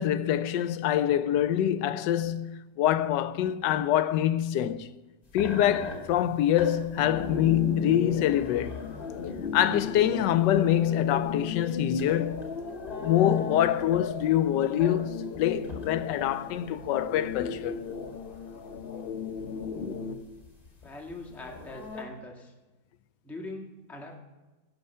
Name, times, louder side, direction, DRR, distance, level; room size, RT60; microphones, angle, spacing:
voice 1, 0.0-4.9 5.3-8.9 9.5-12.4 13.0-17.7, left 11 dB, 85° left, 1.2 m, -25 dB
sound 1, 5.3-22.0, left 3 dB, 20° left, 2.1 m, -43 dB
sound 2, 7.0-20.2, left 5 dB, 55° left, 0.7 m, -36 dB
voice 2, 20.8-22.5 23.2-24.2, left 2 dB, ahead, 1.4 m, -42 dB
16.5 x 6.4 x 5.5 m
omnidirectional pair, 1.9 m